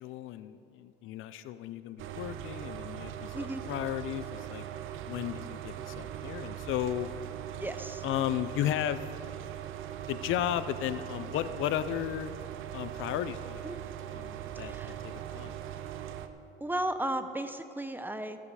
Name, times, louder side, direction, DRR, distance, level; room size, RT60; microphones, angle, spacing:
voice 1, 0.0-4.6 5.1-7.1 8.0-9.0 10.1-12.3 12.7-13.8 14.1-15.6, left 12 dB, 90° left, 13 dB, 0.5 m, -34 dB
sound 1, 2.0-16.3, right 10 dB, 90° right, 0.6 m, -40 dB
voice 2, 7.6-8.1 13.6-13.8 14.5-15.0 16.6-18.4, right 1 dB, 10° right, 9 dB, 0.7 m, -35 dB
16.0 x 8.5 x 4.9 m, 2.7 s
cardioid pair, 90°, 20 cm